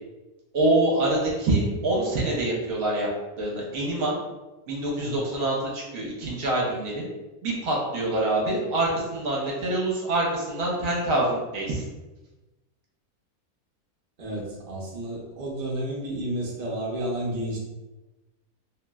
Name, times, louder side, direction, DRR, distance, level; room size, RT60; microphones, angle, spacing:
voice 1, 0.5-3.1 3.4-4.2 4.7-7.0 7.4-11.8, right 2 dB, 65° right, -4 dB, 1.1 m, -25 dB
voice 2, 14.2-17.6, right 1 dB, 45° right, -5 dB, 0.7 m, -31 dB
3.0 x 2.8 x 2.3 m, 1.1 s
omnidirectional pair, 1.6 m